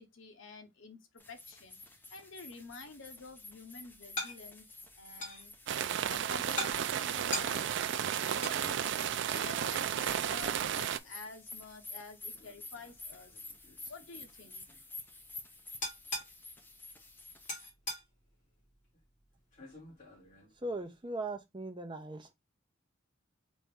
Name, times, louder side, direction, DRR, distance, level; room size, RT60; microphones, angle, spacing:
voice 1, 0.0-4.7 4.9-5.5 6.0-9.0 9.3-13.3 13.8-14.8, left 3 dB, 70° left, 1.0 m, -50 dB
sound 1, 1.2-17.7, left 2 dB, 10° left, 0.6 m, -50 dB
sound 2, 2.7-21.2, left 1 dB, 40° left, 2.3 m, -46 dB
sound 3, 5.7-11.0, right 9 dB, 60° right, 0.4 m, -33 dB
voice 2, 20.6-22.3, right 2 dB, 25° right, 0.8 m, -39 dB
4.2 x 2.9 x 3.5 m
head